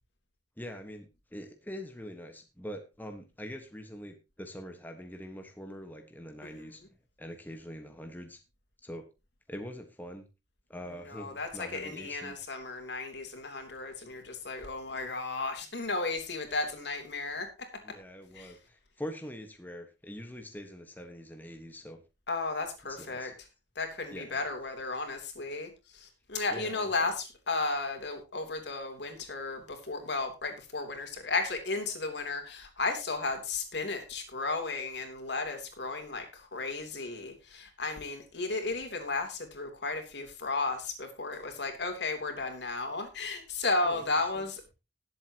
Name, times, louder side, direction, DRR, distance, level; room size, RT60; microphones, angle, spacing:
voice 1, 0.6-8.4 8.8-9.0 9.5-10.3 10.7-12.4 17.8-22.0 22.9-23.3 24.1-24.4 26.5-26.9 43.8-44.1 44.3-44.4, equal, 10° left, 5 dB, 1.4 m, -44 dB
voice 2, 11.1-17.5 18.3-18.5 22.3-23.3 23.7-44.7, left 3 dB, 65° left, 5 dB, 3.2 m, -34 dB
19.5 x 7.9 x 2.9 m, 0.27 s
head